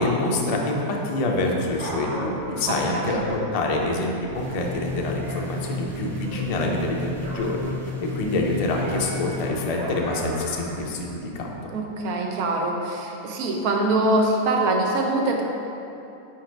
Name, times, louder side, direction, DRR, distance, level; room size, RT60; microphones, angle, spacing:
voice 1, 0.0-7.7 8.0-11.5, left 2 dB, 75° left, 0 dB, 0.3 m, -26 dB
Dog, 1.5-5.4 5.7-7.6 7.9-10.9 11.5-11.6, right 1 dB, 50° right, 1.2 m, -37 dB
voice 2, 2.7-3.2 11.7-15.4, right 2 dB, 80° right, 1 dB, 1.2 m, -24 dB
sound 1, 4.3-9.5, left 2 dB, 65° right, 0.3 m, -33 dB
4.8 x 4.6 x 4.5 m, 2.8 s
omnidirectional pair, 1.6 m